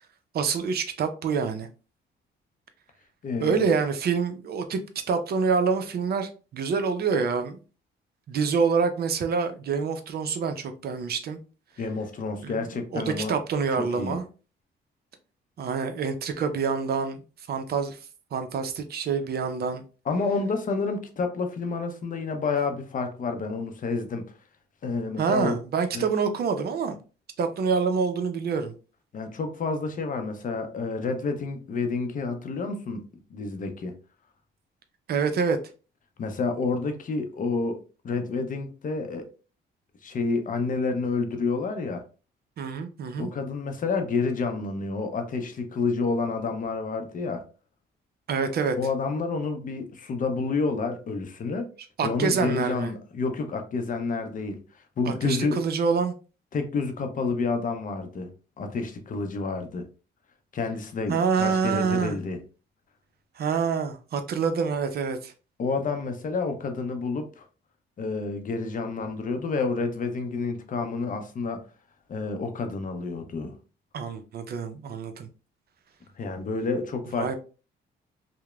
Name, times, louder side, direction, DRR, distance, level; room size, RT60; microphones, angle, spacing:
voice 1, 0.3-1.7 3.4-4.8 5.1-7.6 8.3-11.4 12.4-12.6 12.9-14.2 15.6-17.2 17.5-18.0 18.3-19.8 25.2-27.0 27.4-28.7 35.1-35.6 42.6-43.3 48.3-48.8 52.0-52.9 55.1-56.1 61.1-62.2 63.4-65.3 73.9-75.3 77.2-77.4, right 5 dB, 55° right, 0.4 m, -26 dB
voice 2, 3.2-3.7 11.8-13.3 13.8-14.2 20.1-24.2 24.8-25.6 25.9-26.0 29.1-33.0 33.3-33.9 36.2-39.3 40.0-42.0 43.2-47.4 48.8-51.7 52.0-54.6 55.0-55.6 56.5-58.3 58.6-59.9 60.5-62.4 65.6-67.5 68.0-71.6 72.1-73.6 76.2-77.4, left 4 dB, 40° left, 0.5 m, -29 dB
2.9 x 2.0 x 2.3 m
cardioid pair, 90°, 20 cm